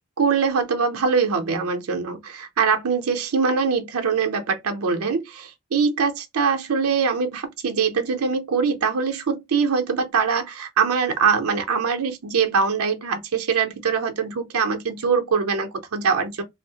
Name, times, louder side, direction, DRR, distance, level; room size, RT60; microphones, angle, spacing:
voice 1, 0.2-16.4, right 5 dB, 85° right, 0.6 m, -23 dB
2.6 x 2.0 x 2.7 m
head